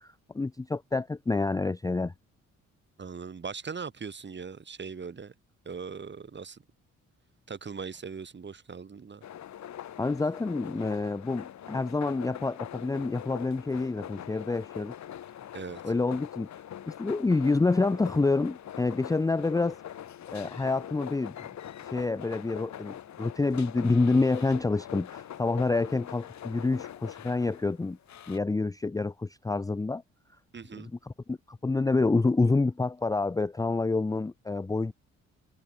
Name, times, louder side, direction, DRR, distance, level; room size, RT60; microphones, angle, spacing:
voice 1, 0.0-2.1 10.0-14.9 15.8-16.5 16.9-19.8 20.3-21.3 21.9-28.0 28.3-30.0 30.8-34.9, left 3 dB, 10° left, 0.6 m, -28 dB
voice 2, 3.0-5.3 5.7-6.6 7.5-9.2 15.5-15.8 30.5-30.9, right 5 dB, 35° right, 5.3 m, -40 dB
sound 1, 9.2-28.4, left 10 dB, 65° left, 4.4 m, -43 dB
cardioid pair, 90°, 30 cm